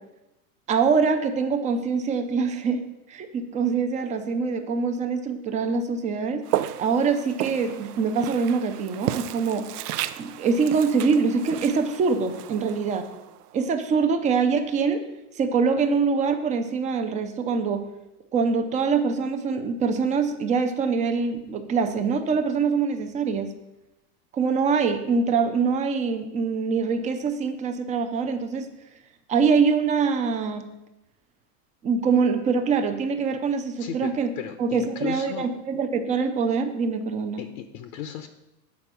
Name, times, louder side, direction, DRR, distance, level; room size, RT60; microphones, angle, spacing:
voice 1, 0.7-2.8 3.1-6.4 6.8-9.6 10.2-13.1 13.5-15.1 15.4-17.8 18.3-23.5 24.3-28.7 29.3-30.7 31.8-34.3 34.6-37.4, right 5 dB, 15° right, 8 dB, 0.4 m, -24 dB
Walk footsteps, 6.4-13.6, right 13 dB, 85° right, 0.6 m, -33 dB
voice 2, 33.8-35.5 37.4-38.3, left 8 dB, 55° left, 8 dB, 0.8 m, -35 dB
8.4 x 4.3 x 5.9 m, 0.93 s
supercardioid pair, 135°, 45 cm